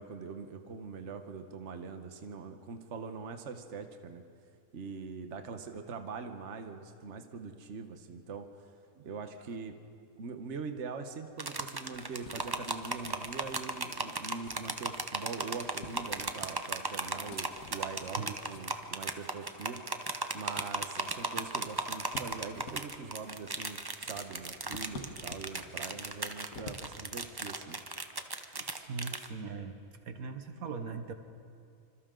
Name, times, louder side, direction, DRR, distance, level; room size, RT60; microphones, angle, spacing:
voice 1, 0.0-4.2 4.7-8.5 9.0-9.8 10.2-19.8 20.3-27.8, right 5 dB, 55° right, 7 dB, 1.4 m, -42 dB
sound 1, 11.4-29.3, right 3 dB, 20° right, 0.7 m, -36 dB
sound 2, 11.5-26.9, left 3 dB, 75° left, 1.9 m, -52 dB
voice 2, 28.6-29.8 30.0-31.1, right 5 dB, 75° right, 7 dB, 1.5 m, -40 dB
27.0 x 25.5 x 3.8 m, 2.5 s
omnidirectional pair, 1.5 m